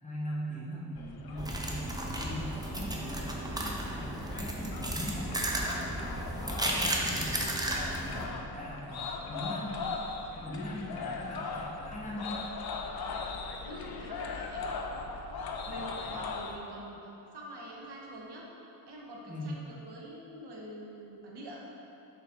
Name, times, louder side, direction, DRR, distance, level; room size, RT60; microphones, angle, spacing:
voice 1, 0.0-7.4 8.0-9.8 10.3-12.5 15.8-16.2 19.3-19.5, equal, 20° left, -6 dB, 1.1 m, -41 dB
sound 1, 1.0-16.6, left 4 dB, 65° left, 0.5 m, -40 dB
sound 2, 1.4-8.2, right 1 dB, 10° right, 0.5 m, -34 dB
voice 2, 13.6-14.7 15.7-18.5 18.9-21.6, right 1 dB, 80° right, -3 dB, 1.2 m, -45 dB
6.7 x 5.1 x 3.7 m, 2.8 s
wide cardioid pair, 150°, 40 cm